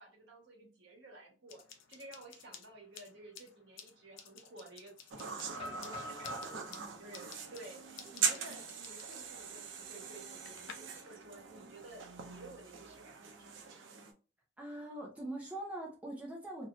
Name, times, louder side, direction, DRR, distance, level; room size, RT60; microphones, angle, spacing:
voice 1, 0.0-13.9, right 2 dB, 65° right, 0 dB, 1.2 m, -54 dB
sound 1, 1.5-10.7, left 7 dB, 90° left, 0.5 m, -55 dB
sound 2, 5.1-14.1, right 6 dB, 85° right, 0.6 m, -41 dB
sound 3, 5.5-9.4 9.8-9.9 10.4-10.7 12.1-12.9, left 1 dB, 30° left, 0.9 m, -48 dB
voice 2, 6.5-6.9 14.6-16.7, right 1 dB, 5° right, -2 dB, 0.6 m, -43 dB
2.8 x 2.4 x 3.0 m, 0.36 s
head